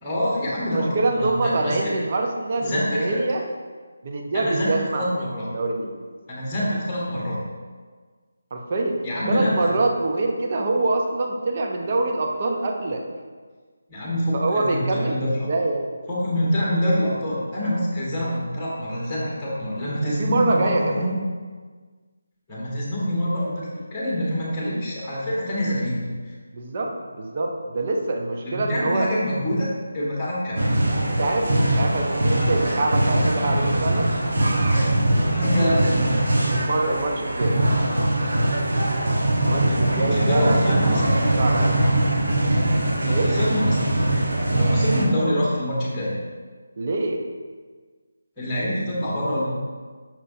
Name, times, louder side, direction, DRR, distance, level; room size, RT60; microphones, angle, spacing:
voice 1, 0.0-1.9 2.6-3.2 4.3-5.5 6.3-7.4 9.0-9.7 13.9-15.5 16.1-21.2 22.5-26.3 28.4-29.7 29.9-30.7 35.1-36.1 39.9-41.2 43.0-43.8 44.5-46.1 48.4-49.5, equal, 10° left, -6 dB, 1.5 m, -25 dB
voice 2, 0.7-3.4 4.0-5.1 5.5-5.9 8.5-9.0 9.3-13.0 14.3-15.9 20.0-21.1 26.5-29.1 31.0-34.3 36.5-37.6 39.4-40.8 41.4-41.8 43.1-43.3 46.8-47.2, right 2 dB, 40° right, 1 dB, 0.8 m, -25 dB
sound 1, 30.6-45.0, right 1 dB, 60° right, 1.2 m, -21 dB
6.3 x 6.0 x 2.7 m, 1.5 s
figure-of-eight pair, 155°, 0 cm